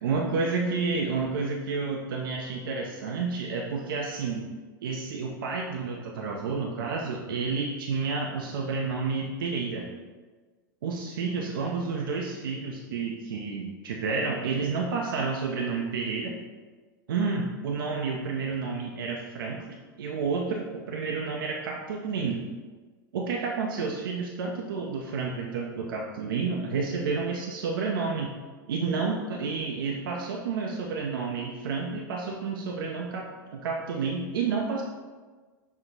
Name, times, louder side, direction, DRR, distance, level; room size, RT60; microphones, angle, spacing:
voice 1, 0.0-4.5 4.8-9.9 10.8-16.4 17.1-22.4 23.1-28.3 28.7-34.8, right 4 dB, 75° right, 0 dB, 0.5 m, -30 dB
6.0 x 2.1 x 3.9 m, 1.4 s
hypercardioid pair, 95°, 11 cm